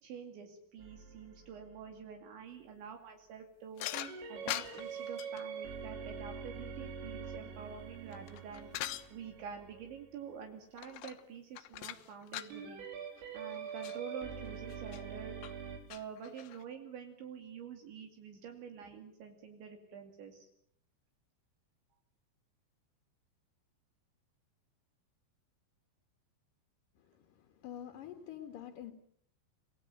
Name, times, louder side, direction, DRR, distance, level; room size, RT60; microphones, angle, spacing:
voice 1, 0.0-3.9 4.3-12.9 13.3-15.3 15.9-20.5, right 7 dB, 65° right, 4 dB, 4.7 m, -47 dB
sound 1, 0.8-2.0 3.9-10.4 12.5-15.8, right 6 dB, 85° right, 6.6 m, -45 dB
sound 2, 3.8-5.4 7.8-9.1 10.8-11.3 11.6-12.6 13.2-13.3 13.5-14.0 14.7-15.0 15.4-15.5 15.9-16.6, left 14 dB, 80° left, 3.7 m, -42 dB
voice 2, 27.0-28.9, left 10 dB, 55° left, 5 dB, 2.7 m, -47 dB
27.0 x 19.0 x 9.0 m, 0.70 s
omnidirectional pair, 5.7 m